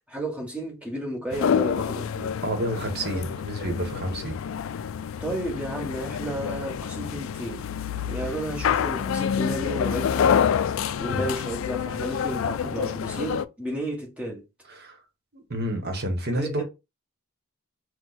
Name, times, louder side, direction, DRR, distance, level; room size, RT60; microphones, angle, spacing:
voice 1, 0.1-2.3 5.2-7.6 8.1-10.3 11.0-14.4 16.4-16.6, right 1 dB, 5° right, 1.4 m, -32 dB
sound 1, 1.3-13.5, left 8 dB, 65° left, 0.3 m, -27 dB
voice 2, 2.4-4.4 11.1-11.3 14.7-15.0 15.3-16.6, right 1 dB, 50° right, 1.1 m, -29 dB
4.4 x 2.3 x 4.1 m
head